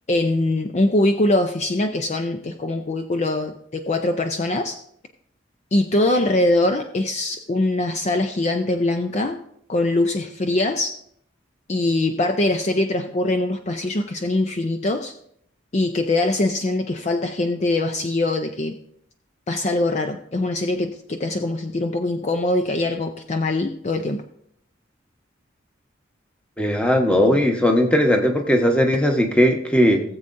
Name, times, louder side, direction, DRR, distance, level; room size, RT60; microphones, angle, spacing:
voice 1, 0.1-4.8 5.7-9.4 9.7-10.9 11.7-15.1 15.7-18.8 19.5-24.2, left 2 dB, 35° left, 6 dB, 0.5 m, -22 dB
voice 2, 26.6-30.0, equal, 5° left, 3 dB, 1.0 m, -18 dB
17.5 x 7.6 x 2.6 m, 0.70 s
head